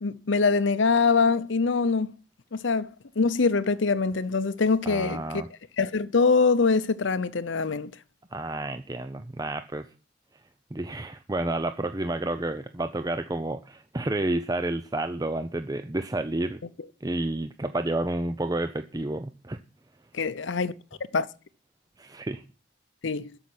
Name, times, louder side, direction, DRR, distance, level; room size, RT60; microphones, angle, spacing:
voice 1, 0.0-2.1 2.5-5.4 5.8-7.9 20.1-20.7 21.1-21.3 23.0-23.3, left 4 dB, 70° left, 0.7 m, -24 dB
voice 2, 4.8-5.5 8.3-9.8 10.7-16.6 17.0-19.6 22.0-22.4, right 2 dB, 20° right, 0.5 m, -30 dB
13.5 x 5.8 x 9.5 m
head